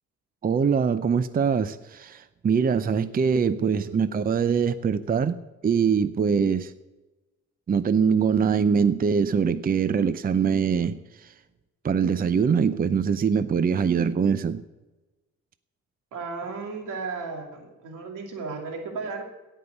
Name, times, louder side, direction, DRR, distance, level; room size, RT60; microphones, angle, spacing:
voice 1, 0.4-5.4 5.6-6.7 7.7-11.3 11.8-14.6, right 6 dB, 30° right, 0.6 m, -23 dB
voice 2, 3.5-4.1 16.1-19.2, right 4 dB, 90° right, 2.7 m, -35 dB
16.5 x 5.6 x 8.0 m
cardioid pair, 90°, 30 cm